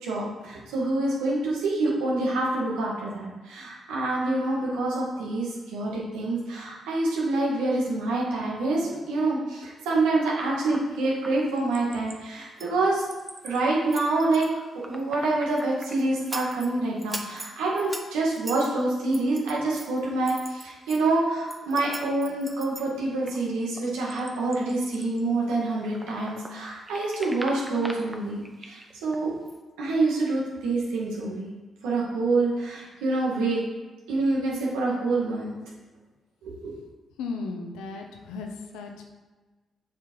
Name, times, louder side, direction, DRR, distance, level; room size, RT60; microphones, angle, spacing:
voice 1, 0.0-13.0 13.4-14.5 14.9-29.3 29.8-31.5 31.8-33.6 34.1-35.5 36.4-36.7, right 2 dB, 85° right, -4 dB, 1.7 m, -26 dB
sound 1, 10.5-12.2 12.6-13.6 13.9-16.7 17.0-21.0 21.4-26.6 26.9-29.2 29.5-29.6, right 2 dB, 25° right, 1.1 m, -41 dB
voice 2, 37.2-39.0, left 4 dB, 85° left, 3 dB, 0.9 m, -35 dB
7.3 x 4.8 x 4.6 m, 1.2 s
supercardioid pair, 50°, 0 cm